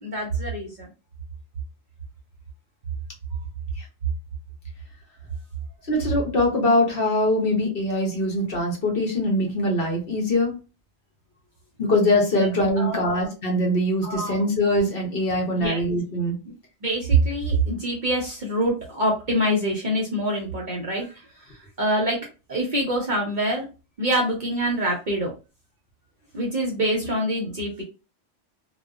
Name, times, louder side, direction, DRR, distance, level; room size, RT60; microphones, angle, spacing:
voice 1, 0.0-0.9 12.8-13.3 14.0-14.4 15.6-15.8 16.4-16.5 16.8-21.2 21.8-22.2 22.5-23.6 24.0-25.3 26.3-27.8, right 1 dB, 50° right, 0 dB, 0.7 m, -25 dB
voice 2, 5.9-10.6 11.8-16.3, left 1 dB, 55° left, 1 dB, 0.9 m, -22 dB
2.5 x 2.2 x 2.3 m, 0.31 s
omnidirectional pair, 1.3 m